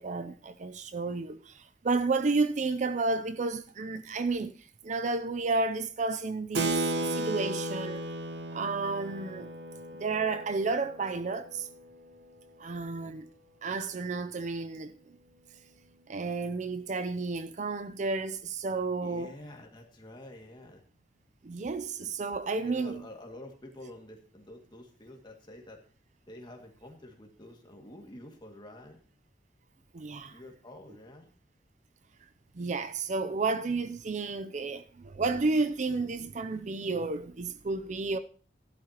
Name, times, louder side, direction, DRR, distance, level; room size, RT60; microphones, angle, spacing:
voice 1, 0.0-8.0 8.5-9.5 10.0-11.7 12.6-13.3 13.6-14.9 16.1-19.3 21.4-23.0 29.9-30.4 32.5-38.2, right 3 dB, 45° right, 0.5 m, -31 dB
Keyboard (musical), 6.5-12.6, right 1 dB, 70° right, 1.1 m, -35 dB
voice 2, 12.7-13.2 19.0-20.8 22.6-25.8 26.3-29.0 30.3-31.3, left 1 dB, 25° left, 2.1 m, -48 dB
15.0 x 11.5 x 2.9 m
head